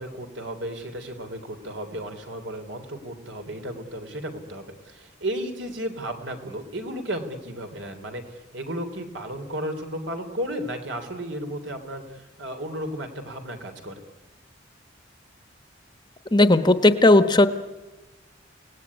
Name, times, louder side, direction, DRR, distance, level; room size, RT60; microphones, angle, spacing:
voice 1, 0.0-14.0, right 1 dB, 70° right, 6 dB, 3.6 m, -34 dB
voice 2, 16.3-17.5, left 2 dB, 25° left, 10 dB, 1.1 m, -16 dB
29.5 x 18.5 x 9.9 m, 1.1 s
head